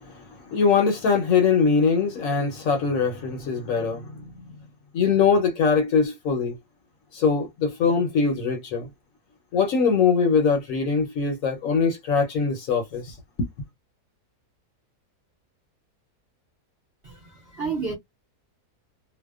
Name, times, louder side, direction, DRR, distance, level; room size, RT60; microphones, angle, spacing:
voice 1, 0.0-4.2 4.9-6.6 7.1-8.9 9.5-13.2, left 5 dB, 65° left, 0.9 m, -22 dB
voice 2, 17.0-18.0, right 4 dB, 50° right, 0.7 m, -31 dB
2.7 x 2.1 x 2.2 m
omnidirectional pair, 1.7 m